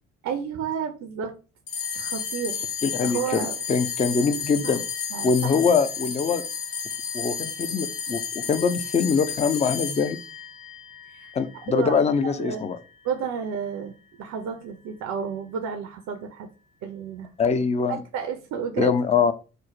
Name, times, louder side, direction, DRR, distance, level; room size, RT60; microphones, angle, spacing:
voice 1, 0.2-1.3 1.9-2.7 3.0-3.5 4.6-4.8 5.1-5.5 11.1-11.3 11.7-12.0 12.2-12.7 13.0-16.5 16.8-17.3 18.1-18.9, right 7 dB, 55° right, 6 dB, 0.6 m, -31 dB
sound 1, 1.7-12.3, left 6 dB, 55° left, 1.2 m, -32 dB
voice 2, 2.8-3.4 3.7-4.8 5.2-6.4 7.1-10.2 11.3-12.8 17.4-18.0 18.8-19.3, left 5 dB, 20° left, 10 dB, 0.4 m, -23 dB
3.2 x 2.0 x 4.0 m, 0.34 s
figure-of-eight pair, 40°, 34 cm